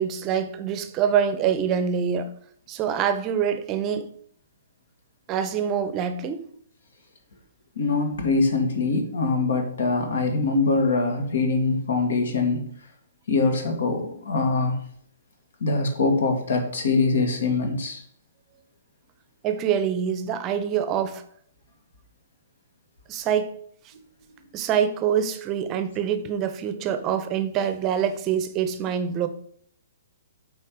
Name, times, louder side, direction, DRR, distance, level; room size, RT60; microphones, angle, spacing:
voice 1, 0.0-2.3 2.7-4.1 5.3-6.5 19.4-21.2 23.1-23.5 23.8-23.9 24.5-29.3, right 8 dB, 25° right, 0.7 m, -25 dB
voice 2, 7.8-12.7 13.3-14.8 15.6-18.0, left 3 dB, 75° left, 2.0 m, -23 dB
7.7 x 4.5 x 4.7 m
hypercardioid pair, 145°, 0 cm